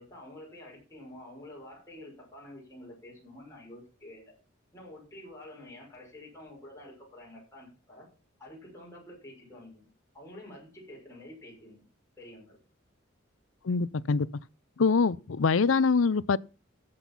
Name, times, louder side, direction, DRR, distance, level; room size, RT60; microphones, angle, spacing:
voice 1, 0.0-4.3 4.7-8.1 8.4-9.9 10.1-11.8 12.2-12.6, left 1 dB, 15° left, 6.0 m, -48 dB
voice 2, 13.6-14.3 14.8-16.4, left 4 dB, 80° left, 0.6 m, -24 dB
14.5 x 7.8 x 5.5 m
head